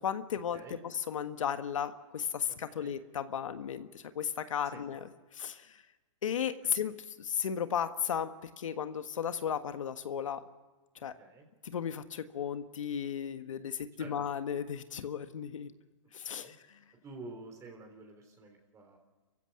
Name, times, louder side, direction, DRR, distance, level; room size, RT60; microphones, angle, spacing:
voice 1, 0.0-5.8 6.2-8.3 8.6-10.4 11.0-11.1 11.6-15.7 16.1-16.5, left 8 dB, 85° left, 9 dB, 1.6 m, -35 dB
voice 2, 17.0-19.0, right 3 dB, 20° right, 3 dB, 3.6 m, -49 dB
26.5 x 15.5 x 9.5 m, 1.3 s
hypercardioid pair, 140°, 16 cm